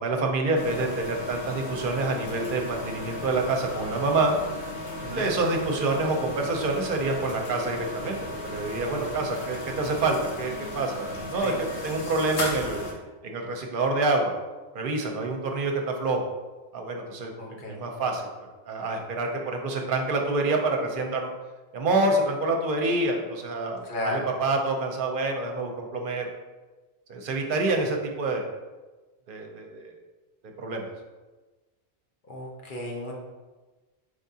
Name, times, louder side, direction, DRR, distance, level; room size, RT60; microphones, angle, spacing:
voice 1, 0.0-4.3 5.1-8.2 8.4-12.8 13.2-14.3 14.7-16.3 16.7-18.3 18.7-21.3 21.7-26.3 27.1-28.5 29.3-29.9 30.6-30.9, right 2 dB, 55° right, 2 dB, 0.7 m, -27 dB
sound 1, 0.5-12.9, left 1 dB, 75° left, 1.0 m, -35 dB
voice 2, 17.4-17.8 23.8-24.3 32.3-33.1, left 1 dB, 50° left, -1 dB, 0.8 m, -34 dB
4.8 x 3.5 x 2.7 m, 1.2 s
omnidirectional pair, 1.2 m